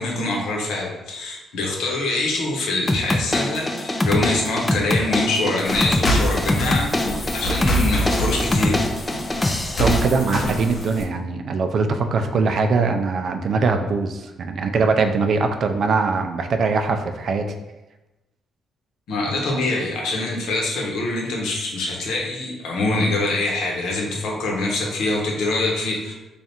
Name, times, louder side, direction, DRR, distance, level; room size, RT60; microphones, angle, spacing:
voice 1, 0.0-8.8 19.1-26.1, left 2 dB, 80° left, -1 dB, 0.9 m, -24 dB
sound 1, 2.9-10.1, left 1 dB, 20° left, 0.4 m, -24 dB
sound 2, 5.6-11.0, equal, 40° left, 0.7 m, -25 dB
voice 2, 9.8-17.5, right 4 dB, 60° right, 6 dB, 0.4 m, -21 dB
3.4 x 2.4 x 4.2 m, 1.0 s
cardioid pair, 90°, 0 cm